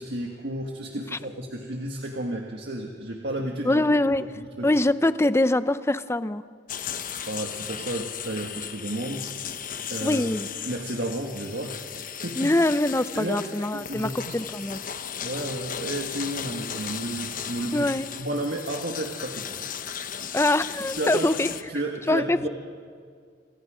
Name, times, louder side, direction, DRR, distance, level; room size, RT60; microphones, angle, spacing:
voice 1, 0.0-3.8 4.4-4.7 7.3-9.2 9.5-9.6 9.9-10.2 10.6-11.9 12.2-12.5 13.1-13.4 13.7-14.4 15.2-17.9 18.2-19.6 21.0-21.3 21.7-22.5, right 1 dB, 65° right, 1 dB, 1.8 m, -32 dB
voice 2, 3.7-6.4 10.0-10.5 12.4-14.8 17.7-18.1 20.3-21.5 22.1-22.5, left 1 dB, 15° left, 13 dB, 0.6 m, -24 dB
sound 1, 6.7-21.6, left 8 dB, 50° left, 1.0 m, -36 dB
28.0 x 27.0 x 5.1 m, 2.1 s
head